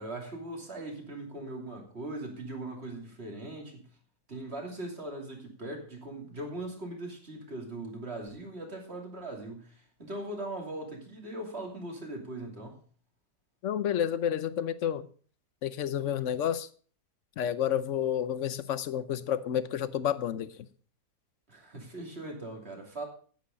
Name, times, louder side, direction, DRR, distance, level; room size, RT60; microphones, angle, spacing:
voice 1, 0.0-3.8 4.3-12.8 21.5-23.1, right 2 dB, 40° right, 2 dB, 3.1 m, -40 dB
voice 2, 13.6-15.1 15.6-16.7 17.4-20.7, left 9 dB, 60° left, 15 dB, 0.9 m, -30 dB
10.5 x 9.5 x 5.2 m, 0.42 s
omnidirectional pair, 1.7 m